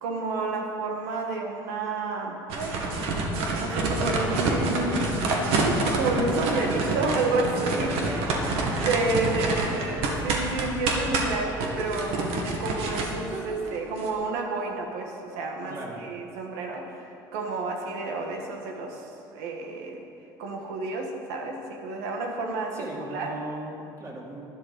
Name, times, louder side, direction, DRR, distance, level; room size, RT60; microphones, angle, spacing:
voice 1, 0.0-2.4 3.6-5.2 5.6-8.2 8.8-12.3 12.6-20.0 20.4-23.4, right 3 dB, 90° right, 2 dB, 1.8 m, -30 dB
sound 1, 2.5-14.1, right 2 dB, 75° right, 1.8 m, -27 dB
voice 2, 8.0-8.9 9.3-10.0 15.7-16.0 22.7-24.5, right 2 dB, 30° right, -2 dB, 2.8 m, -38 dB
12.0 x 11.0 x 5.2 m, 2.7 s
supercardioid pair, 105°, 10 cm